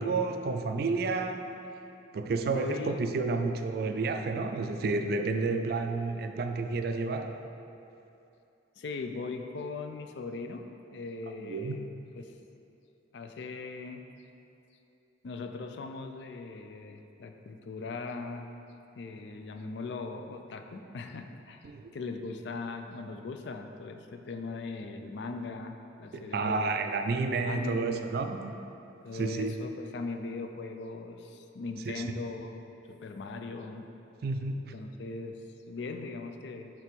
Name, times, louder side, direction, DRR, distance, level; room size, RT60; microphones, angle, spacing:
voice 1, 0.0-1.4 2.1-7.4 11.4-11.8 21.7-21.9 26.1-28.6 29.1-29.5 32.0-32.1 34.2-34.7, right 3 dB, 55° right, 6 dB, 0.3 m, -30 dB
voice 2, 2.4-3.0 8.8-11.9 12.1-12.3 13.1-14.0 15.2-18.5 19.0-26.9 27.4-28.1 29.0-32.6 32.9-33.9 34.7-35.4 35.7-36.7, left 3 dB, 65° left, 6 dB, 0.4 m, -39 dB
5.8 x 3.4 x 5.1 m, 2.8 s
head